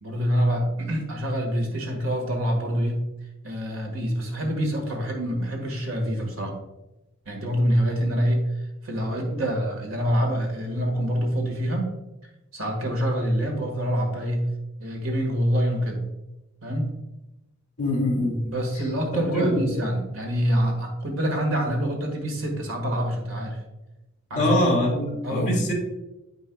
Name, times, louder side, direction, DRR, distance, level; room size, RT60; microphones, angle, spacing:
voice 1, 0.0-3.0 3.4-6.5 7.2-8.5 8.8-11.9 12.5-14.5 14.8-16.0 16.6-16.9 18.4-23.6 24.3-24.7 25.2-25.5, equal, 80° right, 2 dB, 1.7 m, -26 dB
voice 2, 17.8-18.4 19.3-19.8 24.4-25.7, left 1 dB, 35° left, -1 dB, 1.9 m, -23 dB
9.2 x 5.4 x 2.3 m, 0.98 s
head